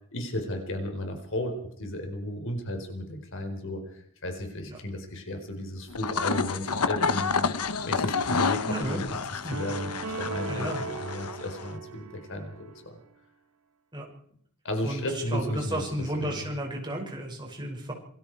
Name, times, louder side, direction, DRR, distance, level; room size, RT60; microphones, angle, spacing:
voice 1, 0.1-7.5 7.8-9.1 9.5-13.0 14.6-16.4, left 1 dB, 60° left, 5 dB, 4.4 m, -34 dB
sound 1, 5.9-11.7, left 5 dB, 85° left, 1.1 m, -29 dB
voice 2, 8.6-9.0 9.4-9.7 10.5-10.8 13.9-14.1 14.8-17.9, right 1 dB, 20° right, 0 dB, 6.1 m, -33 dB
sound 2, 9.5-12.8, right 3 dB, 85° right, 1.7 m, -38 dB
27.5 x 20.5 x 4.8 m, 0.64 s
head